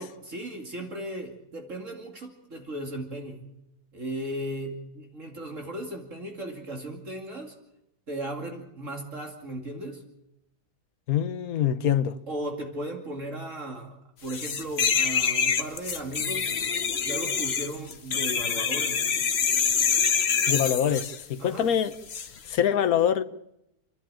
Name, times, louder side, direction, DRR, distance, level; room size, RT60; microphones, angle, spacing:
voice 1, 0.0-3.5 3.9-7.5 8.1-10.0 12.3-14.0 14.2-16.5 17.0-19.1 21.4-21.7, right 1 dB, 50° right, 2.9 m, -36 dB
voice 2, 11.1-12.2 20.5-21.9 22.5-23.2, left 9 dB, 65° left, 1.4 m, -24 dB
sound 1, 14.3-21.2 22.1-22.3, left 6 dB, 45° left, 1.2 m, -26 dB
29.0 x 11.5 x 8.9 m
omnidirectional pair, 1.7 m